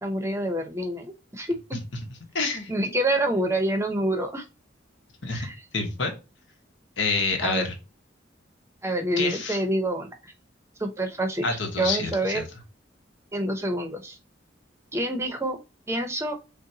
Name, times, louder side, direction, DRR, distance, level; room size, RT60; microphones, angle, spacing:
voice 1, 0.0-1.6 2.7-4.5 5.3-5.6 7.4-7.7 8.8-10.3 10.8-11.4 11.8-12.4 13.3-14.2 14.9-15.6 15.9-16.4, right 1 dB, 15° right, 5 dB, 0.8 m, -27 dB
voice 2, 2.3-2.7 5.2-5.5 5.7-6.1 7.0-7.8 9.2-9.6 11.4-12.4, left 3 dB, 75° left, 3 dB, 1.2 m, -27 dB
6.7 x 2.3 x 2.8 m, 0.29 s
head